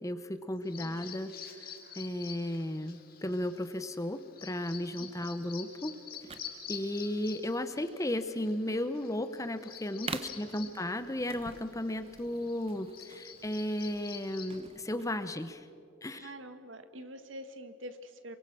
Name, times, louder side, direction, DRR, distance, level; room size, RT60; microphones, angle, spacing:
voice 1, 0.0-5.9 6.7-15.6 16.0-16.3, left 1 dB, 15° left, 10 dB, 0.8 m, -35 dB
Bird vocalization bird call bird song, 0.6-14.6, left 8 dB, 50° left, 2.4 m, -48 dB
voice 2, 0.8-1.1 5.0-5.3 10.2-10.3 10.6-10.7 16.1-18.4, right 1 dB, 70° right, 9 dB, 1.6 m, -46 dB
sound 1, 6.1-15.6, right 4 dB, 30° right, 0.9 m, -47 dB
28.0 x 23.5 x 6.2 m, 2.6 s
head